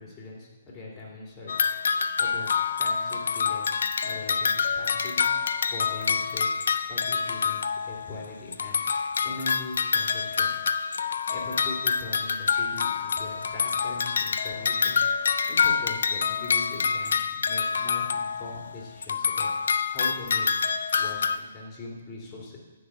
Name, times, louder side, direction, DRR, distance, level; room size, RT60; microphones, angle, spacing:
voice 1, 0.0-6.6 6.9-10.5 11.3-15.0 15.5-20.5 20.9-22.6, left 2 dB, 20° left, -3 dB, 2.7 m, -41 dB
sound 1, 1.5-8.3 8.5-18.7 19.0-21.4, left 6 dB, 60° left, 0.4 m, -27 dB
9.9 x 3.9 x 7.4 m, 1.2 s
figure-of-eight pair, 130°, 0 cm